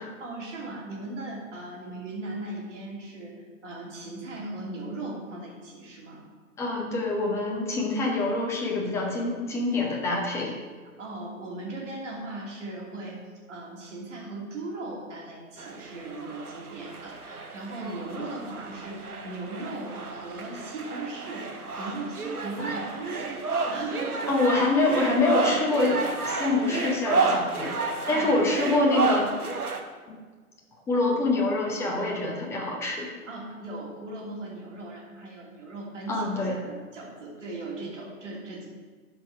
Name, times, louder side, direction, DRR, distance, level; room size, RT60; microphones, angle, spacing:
voice 1, 0.2-6.3 11.0-13.2 13.5-21.5 21.8-24.4 28.0-28.3 33.3-38.7, right 2 dB, 55° right, -3 dB, 2.9 m, -38 dB
voice 2, 6.6-10.5 22.6-22.8 24.3-27.7 28.1-29.3 30.1-30.2 30.9-33.1 36.1-36.5, left 2 dB, 5° left, -1 dB, 0.9 m, -25 dB
sound 1, 15.6-29.8, right 4 dB, 85° right, 1.0 m, -31 dB
12.0 x 5.3 x 4.6 m, 1.4 s
figure-of-eight pair, 125°, 43 cm